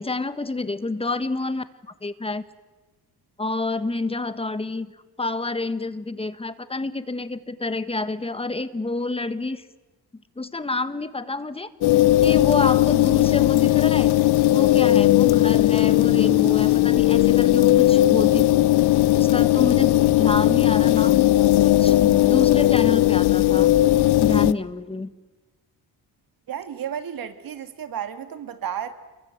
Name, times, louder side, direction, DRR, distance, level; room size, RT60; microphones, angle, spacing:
voice 1, 0.0-1.7 2.0-2.4 3.4-4.9 5.2-9.6 10.1-14.2 14.5-18.7 19.1-23.7 24.2-25.1, left 3 dB, 15° left, 13 dB, 1.3 m, -28 dB
sound 1, 11.8-24.5, left 15 dB, 90° left, 0.9 m, -17 dB
voice 2, 26.5-28.9, right 9 dB, 65° right, 10 dB, 2.4 m, -32 dB
29.0 x 23.0 x 8.0 m, 1.2 s
cardioid pair, 135°, 38 cm